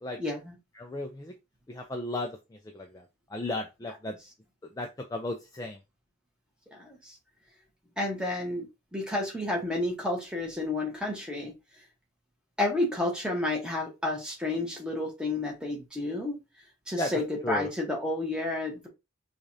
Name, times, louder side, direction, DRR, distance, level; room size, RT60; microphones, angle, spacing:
voice 1, 0.2-0.6 6.8-7.2 8.0-11.5 12.6-16.4 16.9-18.9, left 2 dB, 5° right, 0 dB, 1.0 m, -31 dB
voice 2, 0.8-1.3 1.7-2.3 2.7-2.9 3.3-4.1 4.8-5.8 17.0-17.1 17.4-17.7, left 1 dB, 15° left, 3 dB, 0.3 m, -34 dB
4.8 x 2.4 x 2.6 m, 0.25 s
head